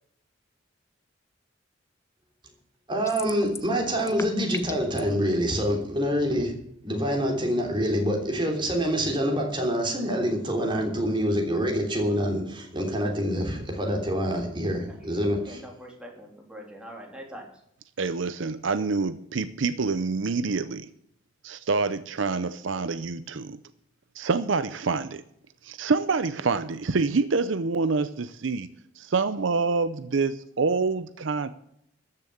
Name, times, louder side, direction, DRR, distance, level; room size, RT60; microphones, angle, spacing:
voice 1, 2.9-6.5 6.8-15.6, equal, 25° right, 2 dB, 3.2 m, -26 dB
sound 1, 3.0-3.7 4.0-5.0, left 4 dB, 15° left, 0.6 m, -37 dB
voice 2, 15.4-17.5, equal, 5° right, 0 dB, 3.1 m, -43 dB
voice 3, 18.0-20.9 21.4-23.6 24.2-25.2 25.6-28.7 29.0-30.3 30.6-31.5, right 4 dB, 70° right, 13 dB, 0.6 m, -26 dB
13.5 x 6.8 x 8.7 m, 0.72 s
head